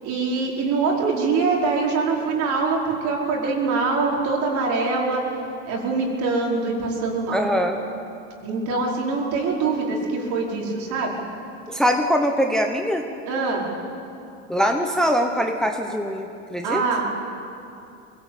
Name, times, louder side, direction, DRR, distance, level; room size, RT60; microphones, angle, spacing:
voice 1, 0.0-5.3 5.6-7.4 8.4-11.1 13.3-13.7 16.6-17.1, right 4 dB, 55° right, -1 dB, 5.0 m, -24 dB
voice 2, 7.3-7.8 11.7-13.1 14.5-16.8, equal, ahead, 3 dB, 1.1 m, -22 dB
22.0 x 17.5 x 8.5 m, 2.7 s
supercardioid pair, 130°, 36 cm